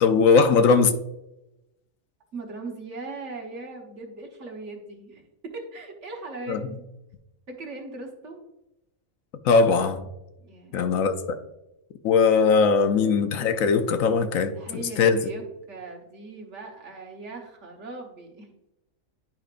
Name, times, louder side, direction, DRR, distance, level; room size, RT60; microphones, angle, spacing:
voice 1, 0.0-1.0 6.5-6.6 9.4-10.0 10.7-11.1 12.0-15.2, left 5 dB, 75° left, 8 dB, 1.1 m, -20 dB
voice 2, 2.3-6.7 7.5-8.4 10.4-10.8 14.5-15.4 15.7-18.5, right 3 dB, 60° right, 1 dB, 1.5 m, -39 dB
10.5 x 5.0 x 2.5 m, 0.91 s
omnidirectional pair, 1.4 m